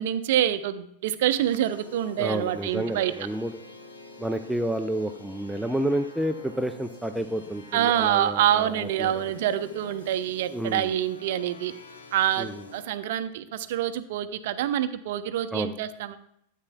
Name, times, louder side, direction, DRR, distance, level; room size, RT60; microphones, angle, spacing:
voice 1, 0.0-3.1 7.7-11.7 12.1-16.2, right 11 dB, 55° right, 12 dB, 0.5 m, -26 dB
sound 1, 1.4-12.8, left 3 dB, 70° left, 1.1 m, -47 dB
voice 2, 2.2-3.5 4.2-9.3 10.5-10.9 12.4-12.6 15.5-15.7, right 1 dB, 5° right, 7 dB, 0.4 m, -30 dB
12.5 x 8.2 x 2.3 m, 0.73 s
figure-of-eight pair, 90°, 0 cm